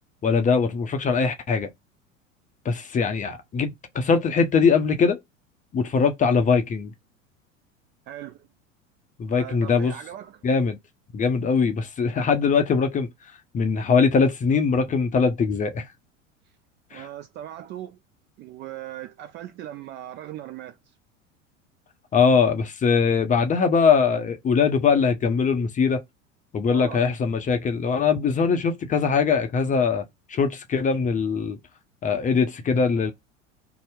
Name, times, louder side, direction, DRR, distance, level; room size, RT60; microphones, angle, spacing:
voice 1, 0.2-1.7 2.6-5.2 5.7-6.9 9.2-10.0 10.4-10.8 11.1-13.1 13.5-15.9 16.9-17.0 22.1-26.0 26.5-30.0 30.3-31.6 32.0-33.1, left 5 dB, 20° left, 0.5 m, -21 dB
voice 2, 8.1-8.5 9.3-10.4 16.9-18.0 18.4-20.8 26.7-27.0, right 12 dB, 30° right, 0.4 m, -38 dB
2.7 x 2.0 x 3.4 m
hypercardioid pair, 80°, 38 cm